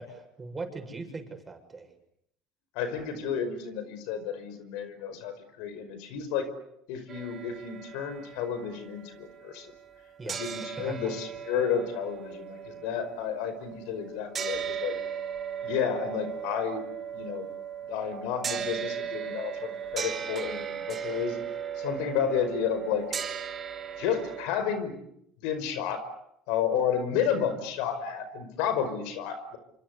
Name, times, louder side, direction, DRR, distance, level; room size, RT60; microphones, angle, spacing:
voice 1, 0.0-1.9 10.2-11.2, right 3 dB, 20° right, 6 dB, 7.2 m, -40 dB
voice 2, 2.8-6.5 6.9-9.7 10.4-15.0 15.6-16.8 17.1-17.5 17.9-21.4 21.8-23.1 24.0-25.0 25.4-26.1 26.5-29.6, left 8 dB, 75° left, 11 dB, 5.3 m, -31 dB
sound 1, 7.1-10.0 10.3-24.5, right 8 dB, 40° right, 6.8 m, -37 dB
28.0 x 25.5 x 8.3 m, 0.76 s
supercardioid pair, 90°, 0 cm